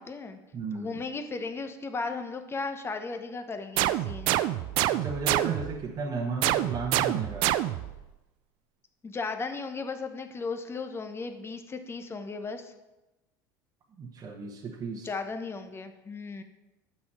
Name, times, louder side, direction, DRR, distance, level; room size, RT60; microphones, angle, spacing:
voice 1, 0.0-0.4 0.7-4.3 9.0-12.7 14.9-16.4, left 4 dB, 25° left, 7 dB, 1.0 m, -36 dB
voice 2, 0.5-1.0 4.9-7.5 14.0-15.1, right 4 dB, 40° right, 0 dB, 1.1 m, -34 dB
sound 1, 3.8-5.8 6.4-8.0, right 14 dB, 60° right, 0.4 m, -27 dB
7.9 x 6.0 x 4.8 m, 1.0 s
hypercardioid pair, 85°, 10 cm